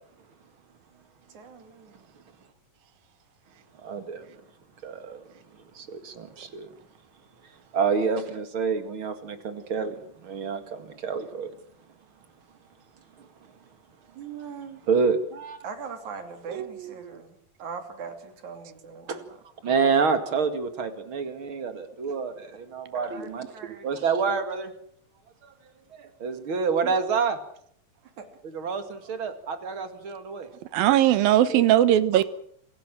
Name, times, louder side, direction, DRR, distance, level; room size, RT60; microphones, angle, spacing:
voice 1, 1.3-2.0 14.2-14.8 15.6-19.4 22.9-23.9 28.2-28.3, right 5 dB, 60° right, 4.1 m, -40 dB
voice 2, 3.8-4.3 4.8-5.3 5.7-6.7 7.7-11.5 13.2-13.3 14.9-15.6 19.1-19.2 19.6-23.4 23.8-24.7 25.4-25.5 25.9-27.4 28.4-30.5 31.5-31.7 32.1-32.2, right 5 dB, 40° right, 2.5 m, -28 dB
voice 3, 30.7-32.2, right 12 dB, 85° right, 2.9 m, -19 dB
27.5 x 16.0 x 7.6 m
omnidirectional pair, 4.0 m